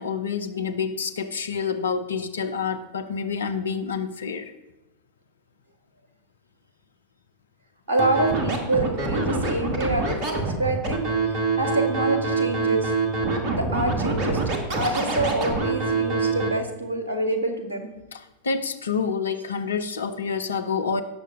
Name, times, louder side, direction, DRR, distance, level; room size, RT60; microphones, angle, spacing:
voice 1, 0.0-4.5 18.1-21.0, left 5 dB, 70° left, 9 dB, 0.8 m, -28 dB
voice 2, 7.9-12.9 13.5-17.9, right 2 dB, 70° right, 6 dB, 1.8 m, -27 dB
Scratching (performance technique), 8.0-16.5, right 3 dB, 40° right, 1.8 m, -25 dB
17.5 x 6.7 x 3.8 m, 1.0 s
figure-of-eight pair, 90°, 0 cm